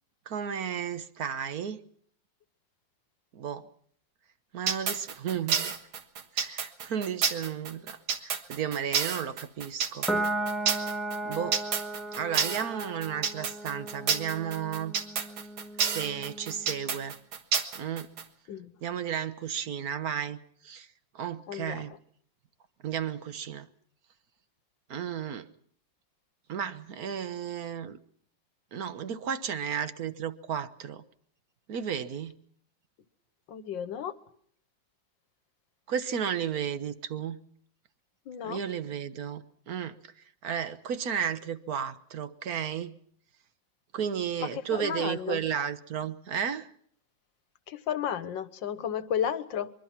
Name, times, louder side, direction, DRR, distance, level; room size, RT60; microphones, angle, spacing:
voice 1, 0.3-1.8 3.3-3.7 4.5-5.7 6.3-10.1 11.2-11.6 12.1-14.9 15.8-17.2 17.7-18.1 18.8-20.9 21.1-21.9 22.8-23.7 24.9-25.5 26.5-28.0 28.7-31.0 31.7-32.3 35.9-37.4 38.4-40.0 40.4-42.9 43.9-46.7, right 8 dB, 50° right, 11 dB, 1.5 m, -33 dB
sound 1, 4.7-18.2, right 6 dB, 85° right, 2.3 m, -29 dB
Piano, 10.1-16.8, right 1 dB, ahead, 1.3 m, -36 dB
voice 2, 21.5-22.0 33.5-34.2 38.3-38.6 44.4-45.4 47.7-49.7, left 9 dB, 65° left, 13 dB, 1.8 m, -33 dB
24.0 x 23.5 x 5.9 m, 0.63 s
omnidirectional pair, 2.2 m